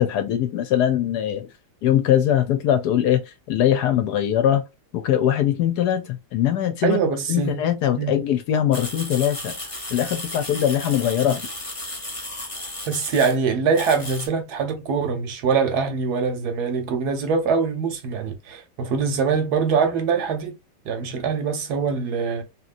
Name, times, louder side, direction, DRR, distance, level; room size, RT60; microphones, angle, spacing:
voice 1, 0.0-1.5 1.8-4.6 4.9-9.5 9.9-11.5, left 10 dB, 70° left, 1.0 m, -21 dB
voice 2, 6.8-7.6 8.0-8.2 12.9-20.6 20.8-22.4, right 5 dB, 70° right, 1.2 m, -23 dB
sound 1, 8.7-13.4 13.7-14.3, left 1 dB, 25° left, 0.8 m, -34 dB
2.9 x 2.8 x 2.5 m
omnidirectional pair, 1.9 m